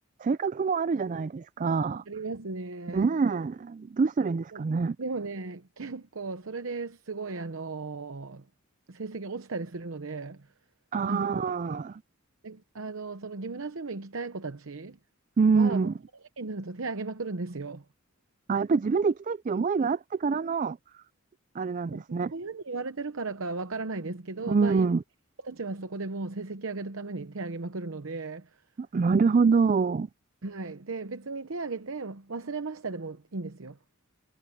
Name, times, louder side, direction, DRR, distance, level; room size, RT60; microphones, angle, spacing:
voice 1, 0.2-2.0 2.9-5.0 10.9-12.0 15.4-15.9 18.5-20.8 21.5-22.3 24.5-25.0 28.8-30.1, right 5 dB, 35° right, 0.3 m, -25 dB
voice 2, 2.1-3.1 4.5-4.6 5.0-8.5 8.9-10.5 11.0-11.3 11.6-11.8 12.4-15.0 15.6-15.9 16.4-17.8 21.9-24.9 25.4-28.5 30.4-33.8, right 3 dB, 70° right, 0.9 m, -36 dB
head